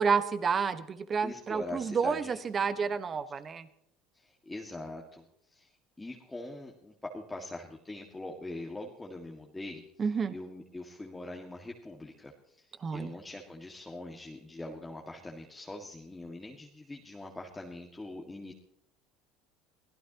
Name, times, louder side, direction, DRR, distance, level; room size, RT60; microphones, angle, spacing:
voice 1, 0.0-3.7 10.0-10.3 12.8-13.1, right 6 dB, 35° right, 12 dB, 1.4 m, -30 dB
voice 2, 1.2-2.9 4.1-5.7 6.0-18.5, left 2 dB, 15° left, 0 dB, 2.0 m, -43 dB
24.0 x 15.5 x 3.0 m, 0.74 s
hypercardioid pair, 80°, 0 cm